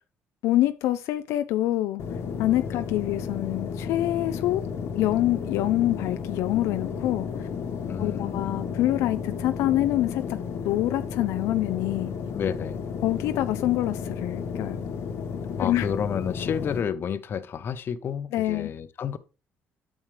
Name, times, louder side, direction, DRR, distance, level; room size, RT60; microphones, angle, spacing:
voice 1, 0.4-2.0 2.4-4.6 5.0-7.5 8.0-10.4 10.6-12.1 13.0-14.8 15.6-15.9 18.3-18.7, left 14 dB, 85° left, 0.4 m, -26 dB
sound 1, 2.0-16.8, left 6 dB, 70° left, 1.2 m, -33 dB
voice 2, 7.9-8.5 12.3-12.8 15.6-19.2, left 7 dB, 50° left, 0.7 m, -30 dB
9.0 x 6.3 x 3.2 m
cardioid pair, 105°, 5 cm